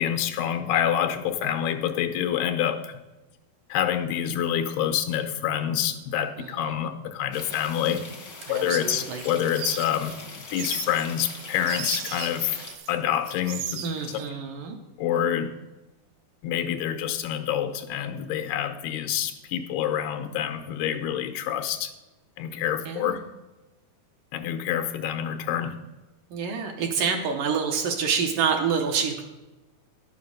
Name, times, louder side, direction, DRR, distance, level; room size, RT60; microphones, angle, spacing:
voice 1, 0.0-2.9 3.7-8.0 8.5-10.2 10.5-12.6 12.9-13.8 15.0-15.5 16.4-21.9 22.4-23.2 24.3-25.8, left 10 dB, 85° left, 7 dB, 2.7 m, -27 dB
sound 1, 7.3-12.8, left 3 dB, 50° left, 1.0 m, -42 dB
voice 2, 8.5-9.2 13.8-14.8 22.9-23.2 26.3-29.2, right 6 dB, 70° right, 3 dB, 2.3 m, -27 dB
sound 2, 8.9-13.0 13.2-14.2, right 9 dB, 90° right, 1.8 m, -37 dB
11.0 x 7.3 x 6.5 m, 1.1 s
omnidirectional pair, 4.5 m